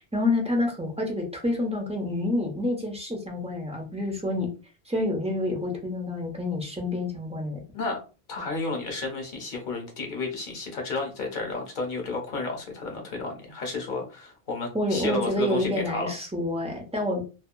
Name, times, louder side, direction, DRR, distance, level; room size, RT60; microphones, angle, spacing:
voice 1, 0.0-4.5 4.9-7.6 14.7-17.2, left 1 dB, 10° right, 0 dB, 0.5 m, -28 dB
voice 2, 8.3-16.2, left 3 dB, 55° left, 2 dB, 0.9 m, -32 dB
2.7 x 2.3 x 2.2 m, 0.33 s
omnidirectional pair, 1.0 m